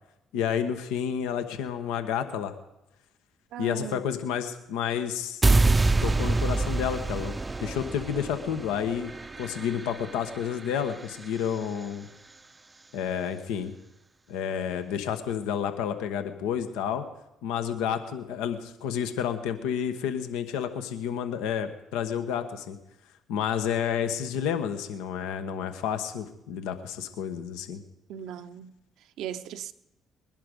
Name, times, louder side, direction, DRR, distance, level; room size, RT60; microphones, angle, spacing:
voice 1, 0.3-2.6 3.6-5.4 6.0-7.3 7.6-9.1 9.4-12.1 12.9-13.7 14.3-17.0 17.4-22.8 23.3-27.8, left 8 dB, 80° left, 1.1 m, -30 dB
voice 2, 3.5-4.1 28.1-29.7, right 10 dB, 75° right, 0.7 m, -39 dB
sound 1, 5.4-11.6, right 3 dB, 25° right, 0.6 m, -27 dB
20.5 x 11.0 x 5.2 m
hypercardioid pair, 55°, 0 cm